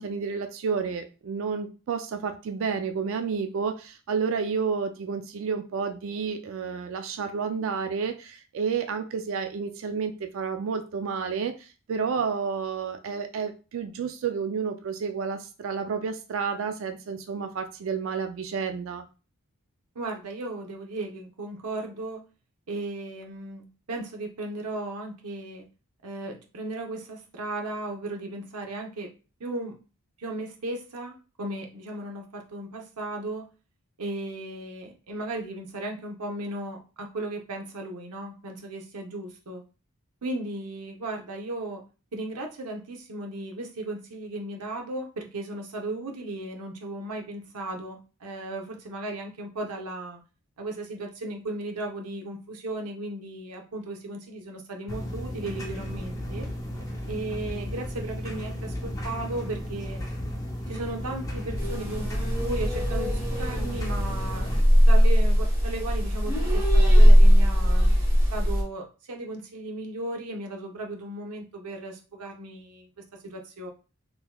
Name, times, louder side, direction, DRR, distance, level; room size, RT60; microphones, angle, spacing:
voice 1, 0.0-19.1, right 5 dB, 60° right, 6 dB, 0.3 m, -30 dB
voice 2, 19.9-22.2 22.7-25.7 26.0-29.1 29.4-29.7 30.2-33.5 34.0-39.6 40.2-41.8 42.1-50.2 50.6-56.5 57.1-60.0 60.7-62.1 62.4-64.5 64.9-72.9 73.2-73.7, right 2 dB, 90° right, 2 dB, 0.8 m, -36 dB
sound 1, 54.9-64.6, equal, 15° left, 0.5 m, -34 dB
sound 2, 61.6-68.6, equal, 10° right, 1.2 m, -19 dB
3.7 x 2.9 x 2.2 m, 0.33 s
head